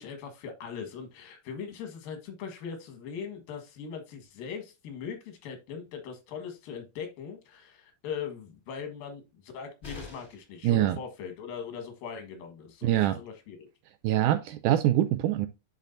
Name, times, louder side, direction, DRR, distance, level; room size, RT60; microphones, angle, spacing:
voice 1, 0.0-13.7, left 7 dB, 85° left, 3.2 m, -40 dB
sound 1, 9.8-10.6 12.5-12.6 12.9-13.0, left 4 dB, 20° left, 2.8 m, -44 dB
voice 2, 10.6-11.0 12.8-13.2 14.0-15.5, right 13 dB, 80° right, 1.9 m, -24 dB
10.5 x 4.2 x 2.6 m
omnidirectional pair, 4.0 m